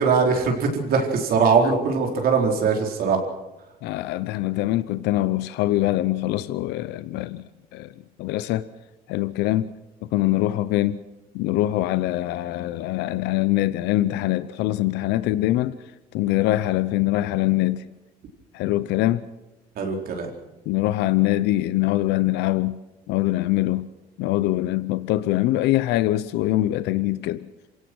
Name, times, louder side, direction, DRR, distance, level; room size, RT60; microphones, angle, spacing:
voice 1, 0.0-3.2 19.8-20.3, right 5 dB, 65° right, 4.4 m, -21 dB
voice 2, 3.8-7.9 8.2-8.7 9.1-9.7 10.1-11.0 11.3-15.8 16.1-17.8 18.5-19.2 20.7-22.7 23.1-23.8 24.2-27.5, left 16 dB, 90° left, 0.7 m, -23 dB
27.0 x 17.5 x 6.2 m
cardioid pair, 110°, 17 cm